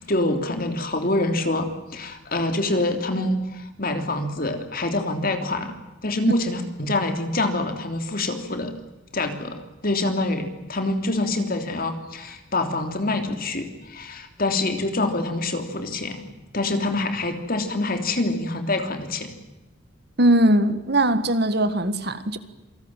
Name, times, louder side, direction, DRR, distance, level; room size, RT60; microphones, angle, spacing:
voice 1, 0.0-5.7 6.0-8.7 9.1-16.2 16.5-19.3, left 2 dB, 45° left, 6 dB, 3.2 m, -26 dB
voice 2, 20.2-22.4, right 1 dB, 50° right, 12 dB, 1.7 m, -20 dB
27.5 x 19.0 x 9.1 m, 1.1 s
head